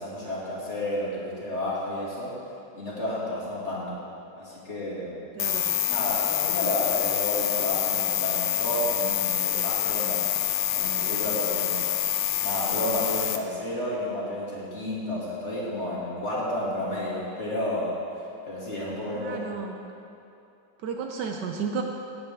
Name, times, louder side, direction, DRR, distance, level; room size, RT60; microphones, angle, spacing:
voice 1, 0.0-2.4 2.7-4.0 4.4-5.2 5.9-10.3 10.7-11.8 12.4-18.0 18.4-19.6, left 1 dB, 35° left, -7 dB, 2.6 m, -31 dB
sound 1, 5.4-13.4, left 11 dB, 85° left, 1.4 m, -26 dB
voice 2, 5.4-5.7 19.2-19.8 20.8-21.8, right 6 dB, 70° right, 2 dB, 1.2 m, -32 dB
16.5 x 8.7 x 3.6 m, 2.7 s
omnidirectional pair, 2.1 m